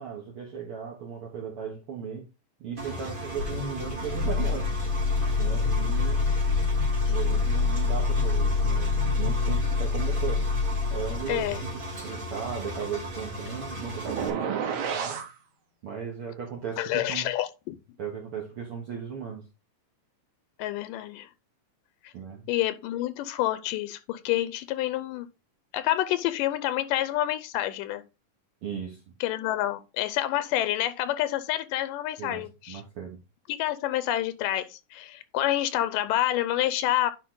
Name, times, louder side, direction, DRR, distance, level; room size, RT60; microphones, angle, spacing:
voice 1, 0.0-2.3 2.6-6.3 7.1-10.5 10.9-11.7 12.0-15.2 15.8-17.3 18.0-19.5 22.1-22.5 28.6-29.1 32.2-33.2, right 7 dB, 55° right, 1.7 m, -37 dB
Engine, 2.8-14.3, right 1 dB, 20° right, 1.4 m, -37 dB
sound 1, 3.4-11.6, left 4 dB, 65° left, 1.3 m, -26 dB
voice 2, 11.3-11.6 16.8-17.8 20.6-21.3 22.0-22.1 22.5-25.3 25.7-28.0 29.2-32.8 33.5-37.1, left 13 dB, 85° left, 2.2 m, -28 dB
sound 2, 14.0-15.3, right 7 dB, 85° right, 1.1 m, -30 dB
10.0 x 3.8 x 3.8 m
omnidirectional pair, 3.8 m